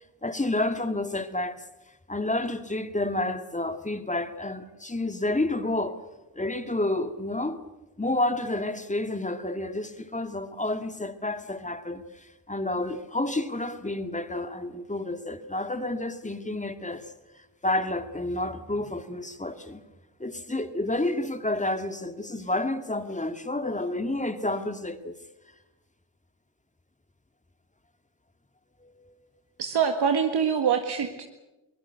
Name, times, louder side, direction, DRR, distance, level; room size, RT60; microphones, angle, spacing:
voice 1, 0.2-1.6 2.1-6.0 6.4-7.6 8.0-17.0 17.6-19.8 20.2-25.2 28.8-29.1, left 2 dB, 15° left, 2.1 m, -30 dB
voice 2, 29.6-31.2, right 7 dB, 55° right, 1.9 m, -24 dB
22.5 x 20.0 x 8.1 m
hypercardioid pair, 40°, 47 cm